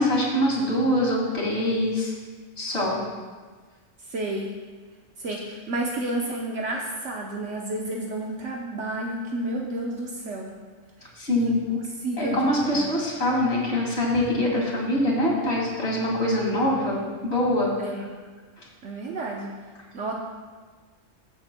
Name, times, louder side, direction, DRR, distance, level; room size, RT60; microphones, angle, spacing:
voice 1, 0.0-2.1 2.6-3.0 11.1-11.5 12.2-17.7, left 1 dB, 60° left, -3 dB, 2.4 m, -24 dB
voice 2, 4.1-4.5 5.2-10.6 11.0-11.1 11.4-12.9 17.8-18.1 18.8-19.5 19.9-20.1, right 1 dB, 75° right, -1 dB, 1.2 m, -30 dB
20.5 x 7.1 x 2.2 m, 1.5 s
omnidirectional pair, 1.3 m